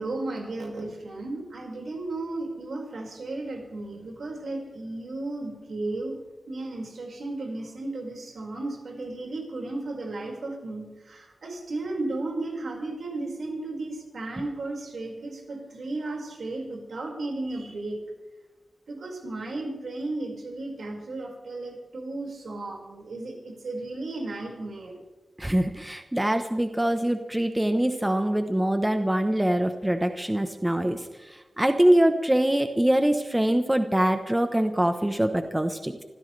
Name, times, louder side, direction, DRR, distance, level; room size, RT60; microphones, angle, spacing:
voice 1, 0.0-6.2 6.5-18.0 18.9-25.0, right 2 dB, 80° right, 0 dB, 5.2 m, -34 dB
voice 2, 25.4-31.0 31.6-35.9, right 1 dB, 10° right, 6 dB, 1.0 m, -23 dB
26.0 x 15.0 x 3.4 m, 1.2 s
wide cardioid pair, 125°, 0 cm